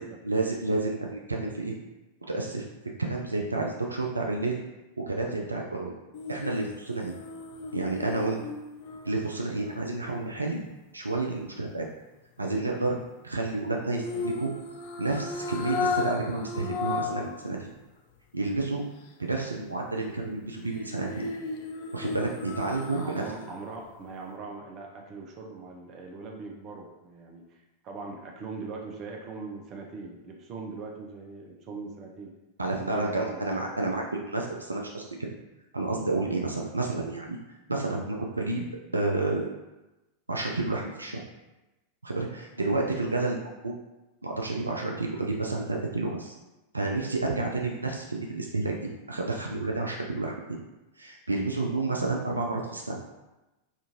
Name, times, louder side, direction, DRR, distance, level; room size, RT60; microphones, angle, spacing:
voice 1, 0.2-1.7 2.3-2.7 3.0-4.6 5.1-5.9 6.3-7.2 7.7-8.4 9.0-10.6 10.9-11.9 12.4-14.5 15.0-17.7 18.3-18.8 19.2-21.3 21.9-23.2 32.6-35.3 35.7-37.4 37.7-38.7 38.9-39.5 40.3-41.2 42.0-43.7 44.2-46.4 46.7-50.6 51.0-53.0, right 2 dB, 80° right, 0 dB, 0.3 m, -30 dB
sound 1, 6.1-10.4 14.0-17.3 17.7-17.8 20.6-23.5 23.9-24.0, left 4 dB, 50° left, 0.4 m, -35 dB
voice 2, 22.9-32.3 32.7-33.4, right 4 dB, 35° right, 1 dB, 0.6 m, -41 dB
3.6 x 2.5 x 2.9 m, 1.0 s
figure-of-eight pair, 90°, 0 cm